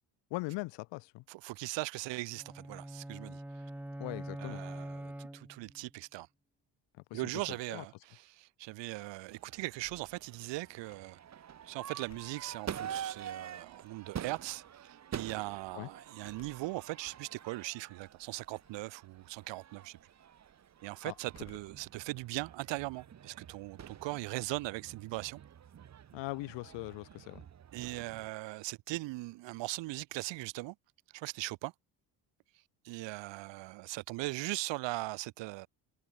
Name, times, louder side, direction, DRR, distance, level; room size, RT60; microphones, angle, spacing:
voice 1, 0.3-1.2 4.0-4.6 7.1-7.2 7.7-7.8 15.7-15.9 21.0-21.1 26.1-27.4, left 23 dB, 80° left, 0.6 m, -40 dB
voice 2, 1.3-3.4 4.4-6.3 7.1-11.2 11.6-20.0 20.8-25.4 27.7-30.7 31.1-31.7 32.8-35.7, right 20 dB, 85° right, 1.7 m, -39 dB
sound 1, 2.3-5.9, right 1 dB, 5° right, 0.8 m, -44 dB
Crowd / Fireworks, 9.3-28.3, right 9 dB, 40° right, 1.4 m, -47 dB
sound 2, 9.7-11.4 11.8-14.4 16.2-16.8 17.3-17.4 18.5-19.0 19.3-19.7 21.3-21.9 22.2-23.6, left 7 dB, 40° left, 4.3 m, -63 dB
cardioid pair, 110°, 43 cm